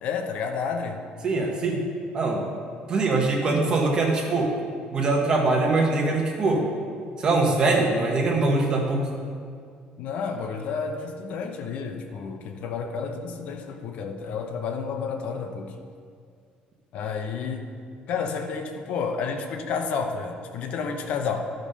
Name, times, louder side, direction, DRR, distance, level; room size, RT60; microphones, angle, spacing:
voice 1, 0.0-1.0 10.0-15.7 16.9-17.7 18.1-21.5, left 5 dB, 50° left, 5 dB, 0.7 m, -30 dB
voice 2, 1.2-1.8 2.1-2.4 2.9-4.5 4.9-6.7 7.2-9.1, right 3 dB, 30° right, 0 dB, 1.2 m, -22 dB
12.0 x 5.2 x 5.5 m, 2.2 s
cardioid pair, 175°, 3 cm